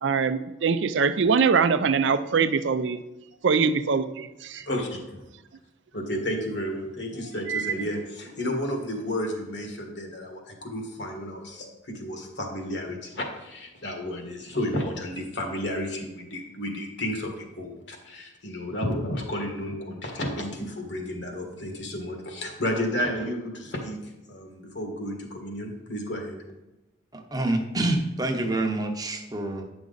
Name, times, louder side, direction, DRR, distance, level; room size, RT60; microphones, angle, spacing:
voice 1, 0.0-3.0 3.4-4.7 7.2-7.9, right 5 dB, 70° right, 12 dB, 0.5 m, -23 dB
voice 2, 4.5-5.0 5.9-24.0 24.3-26.4, left 1 dB, 65° left, 2 dB, 1.6 m, -32 dB
voice 3, 27.1-29.6, right 2 dB, 20° right, 4 dB, 0.8 m, -27 dB
9.5 x 6.1 x 4.0 m, 1.0 s
head